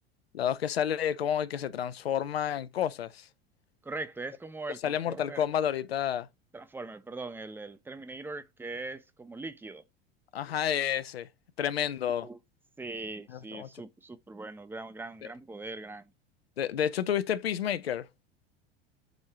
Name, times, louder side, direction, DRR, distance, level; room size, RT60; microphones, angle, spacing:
voice 1, 0.3-3.3 4.8-6.3 10.3-11.3 11.6-12.3 13.3-13.7 15.2-15.3 16.6-18.1, left 9 dB, 80° left, 0.5 m, -30 dB
voice 2, 3.8-5.5 6.5-9.8 12.2-12.4 12.8-16.1, right 3 dB, 5° right, 0.5 m, -41 dB
7.9 x 2.7 x 4.6 m
figure-of-eight pair, 80°, 30 cm